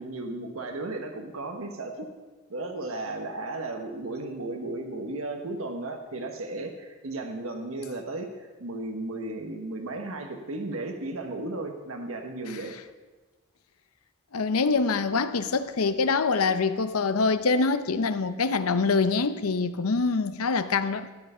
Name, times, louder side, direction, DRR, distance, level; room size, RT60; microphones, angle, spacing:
voice 1, 0.0-2.1 2.5-12.8, right 2 dB, 75° right, 1.1 m, -35 dB
voice 2, 14.3-21.1, left 4 dB, 90° left, 0.7 m, -25 dB
13.0 x 9.0 x 5.5 m
head